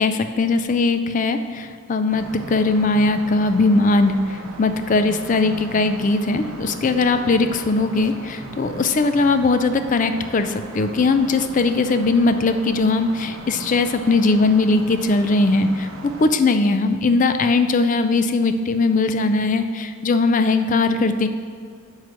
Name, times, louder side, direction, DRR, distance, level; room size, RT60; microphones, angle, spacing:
voice 1, 0.0-15.9 16.2-21.3, left 3 dB, 35° left, 9 dB, 0.4 m, -19 dB
sound 1, 2.1-16.3, right 2 dB, 80° right, 0.8 m, -38 dB
9.1 x 3.2 x 6.0 m, 2.2 s
head